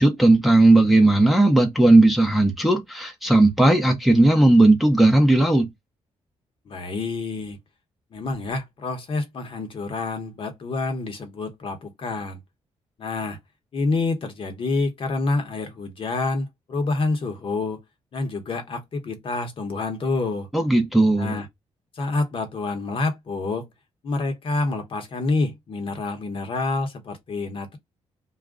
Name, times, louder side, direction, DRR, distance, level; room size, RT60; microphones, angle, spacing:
voice 1, 0.0-5.7 20.5-21.4, right 2 dB, ahead, 0.7 m, -16 dB
voice 2, 6.7-7.6 8.1-12.4 13.0-13.4 13.7-17.8 18.1-20.5 21.2-21.5 21.9-23.7 24.0-27.8, left 3 dB, 50° left, 1.0 m, -27 dB
2.4 x 2.2 x 3.6 m
cardioid pair, 110°, 12 cm